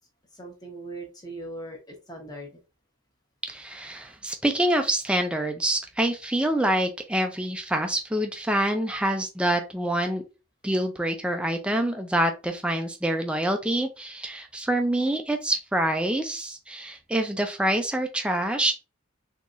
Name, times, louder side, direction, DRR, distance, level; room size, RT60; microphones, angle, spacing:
voice 1, 0.3-2.6, right 1 dB, 20° left, 1 dB, 1.0 m, -40 dB
voice 2, 3.4-10.2 10.6-18.7, right 1 dB, 5° right, 5 dB, 0.4 m, -26 dB
3.8 x 2.9 x 2.5 m, 0.29 s
head